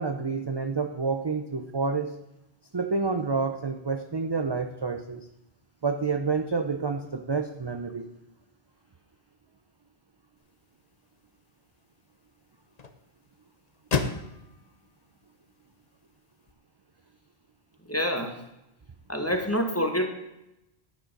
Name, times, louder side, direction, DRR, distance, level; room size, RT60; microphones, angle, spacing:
voice 1, 0.0-2.1 2.7-5.3 5.8-8.1, right 4 dB, 30° right, 6 dB, 0.6 m, -29 dB
sound 1, 10.4-16.5, left 4 dB, 40° left, 0.9 m, -37 dB
voice 2, 17.9-18.4 19.1-20.1, equal, 15° left, 4 dB, 1.4 m, -27 dB
10.5 x 9.7 x 5.3 m, 0.87 s
omnidirectional pair, 1.1 m